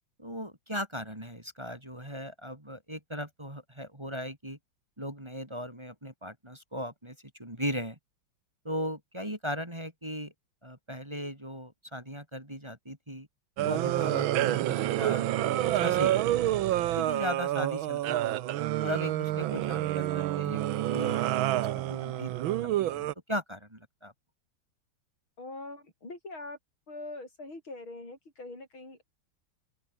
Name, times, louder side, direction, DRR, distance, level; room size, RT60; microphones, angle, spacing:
voice 1, 0.2-4.6 5.0-8.0 8.6-10.3 10.6-13.3 13.6-16.2 16.9-18.4 18.8-21.2 21.5-24.1, equal, 15° right, 4.0 m, -38 dB
sound 1, 13.6-23.1, right 13 dB, 80° right, 1.6 m, -28 dB
voice 2, 25.4-26.6 26.9-29.2, left 2 dB, 80° left, 9.1 m, -43 dB
open air
omnidirectional pair, 2.2 m